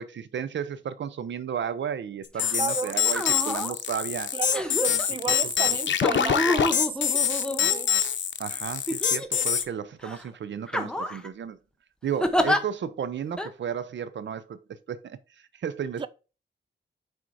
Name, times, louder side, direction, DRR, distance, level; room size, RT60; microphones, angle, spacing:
voice 1, 0.0-4.3 5.3-6.0 8.4-11.6 12.0-14.6 14.9-16.1, right 8 dB, 85° right, 0.6 m, -33 dB
sound 1, 2.4-9.6, left 9 dB, 90° left, 0.7 m, -25 dB
sound 2, 2.4-2.6 3.0-3.7 4.5-5.1 6.0-8.1 8.9-9.6 10.0-10.2 10.7-11.3 12.2-12.6 13.4-13.5, left 1 dB, 5° left, 0.9 m, -29 dB
voice 2, 2.6-3.0 4.3-7.9 16.0-16.1, right 6 dB, 25° right, 0.4 m, -33 dB
6.3 x 4.5 x 4.7 m
wide cardioid pair, 100°, 19 cm